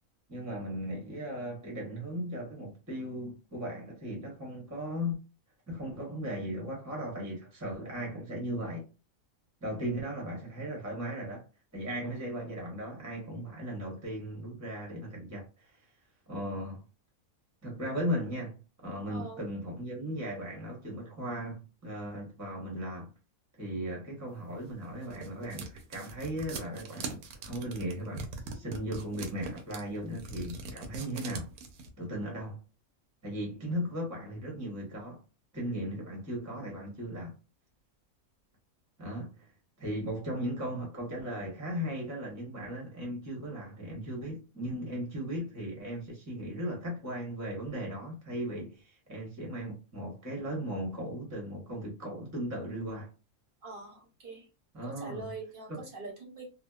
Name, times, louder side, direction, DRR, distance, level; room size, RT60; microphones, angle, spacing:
voice 1, 0.3-5.2 5.7-8.8 9.6-11.4 11.7-15.8 16.3-16.8 17.6-23.1 23.6-31.5 32.0-32.6 33.2-35.2 35.5-37.3 39.0-39.5 39.8-53.1 54.7-55.3 55.7-55.8, equal, 15° right, 0.7 m, -37 dB
voice 2, 19.1-19.4 53.6-54.5 54.8-56.5, right 3 dB, 45° right, 0.8 m, -44 dB
sound 1, 24.6-31.9, right 4 dB, 80° right, 1.0 m, -42 dB
2.7 x 2.1 x 2.3 m
omnidirectional pair, 1.5 m